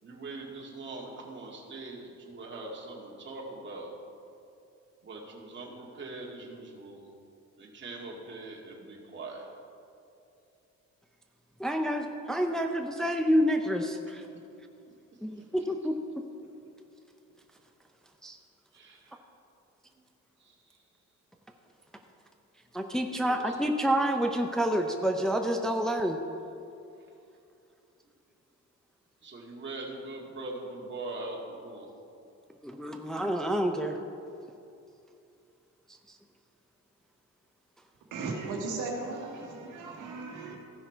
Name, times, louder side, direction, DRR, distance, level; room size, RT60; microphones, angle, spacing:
voice 1, 0.0-3.9 5.0-7.0 7.6-9.5 15.3-15.5 18.7-19.2 19.9-20.0 20.4-20.8 23.1-23.6 29.2-31.9, right 2 dB, 40° right, -2 dB, 2.2 m, -42 dB
voice 2, 11.6-14.2 15.2-16.0 18.2-18.4 22.7-26.2 32.6-34.0 36.1-36.2, equal, ahead, 4 dB, 0.6 m, -28 dB
voice 3, 38.1-40.6, right 3 dB, 90° right, 0 dB, 1.7 m, -36 dB
15.5 x 5.7 x 4.5 m, 2.6 s
cardioid pair, 90°, 30 cm